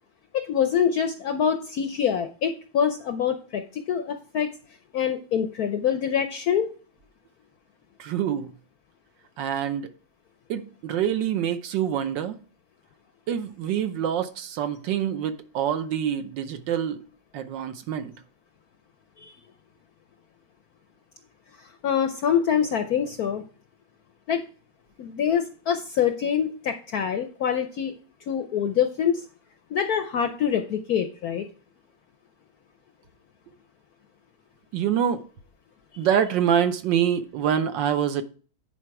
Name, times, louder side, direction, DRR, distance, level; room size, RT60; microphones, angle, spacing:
voice 1, 0.3-4.5 4.9-6.7 19.2-19.3 21.6-23.5 24.3-24.4 25.0-28.0 28.3-29.2 29.7-31.5 35.9-36.1, left 8 dB, 70° left, 0.9 m, -25 dB
voice 2, 8.0-8.5 9.4-9.9 10.5-12.4 13.3-17.0 17.3-18.1 34.7-35.2 36.0-38.2, right 9 dB, 70° right, 1.4 m, -26 dB
10.0 x 4.7 x 4.6 m
omnidirectional pair, 2.2 m